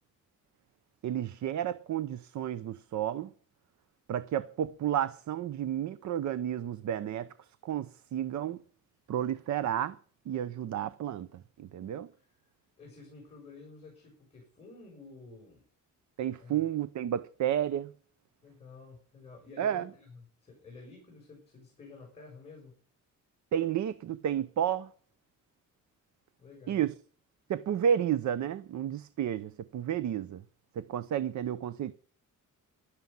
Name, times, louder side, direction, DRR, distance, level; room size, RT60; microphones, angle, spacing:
voice 1, 1.0-3.3 4.1-7.3 7.6-8.6 9.1-10.0 10.3-12.1 16.2-17.9 19.6-19.8 23.5-24.9 26.7-26.9 27.5-30.4 30.8-31.9, right 10 dB, 65° right, 0.7 m, -31 dB
voice 2, 12.2-12.5 12.8-15.6 16.4-16.7 18.4-22.8 26.4-26.9, left 3 dB, 20° left, 7.0 m, -51 dB
15.5 x 12.0 x 5.6 m
wide cardioid pair, 175°, 32 cm